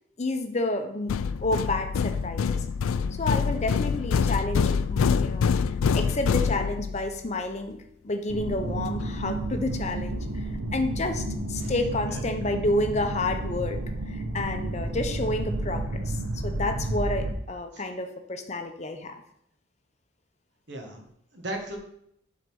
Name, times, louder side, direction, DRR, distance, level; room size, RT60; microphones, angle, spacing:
voice 1, 0.2-1.1 1.4-2.6 3.2-5.5 5.9-13.8 14.1-19.2, left 2 dB, 35° left, 6 dB, 0.7 m, -30 dB
sound 1, 1.1-7.1, left 5 dB, 80° left, 0.4 m, -25 dB
sound 2, 8.3-17.3, right 1 dB, 80° right, 0.9 m, -31 dB
voice 2, 12.1-12.5 17.7-17.8 20.7-21.0 21.3-21.8, right 1 dB, 55° right, 2 dB, 1.5 m, -37 dB
7.7 x 4.0 x 6.3 m, 0.74 s
head